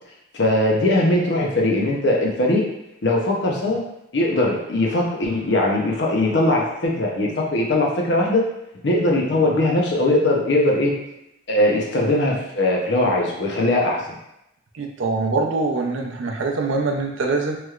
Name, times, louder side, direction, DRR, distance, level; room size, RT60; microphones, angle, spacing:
voice 1, 0.3-2.7 3.0-3.8 4.1-8.4 8.8-10.9 11.5-14.0, left 1 dB, 70° left, -1 dB, 0.7 m, -20 dB
voice 2, 14.7-17.6, right 3 dB, 85° right, 2 dB, 0.5 m, -23 dB
3.2 x 2.9 x 2.4 m, 0.84 s
head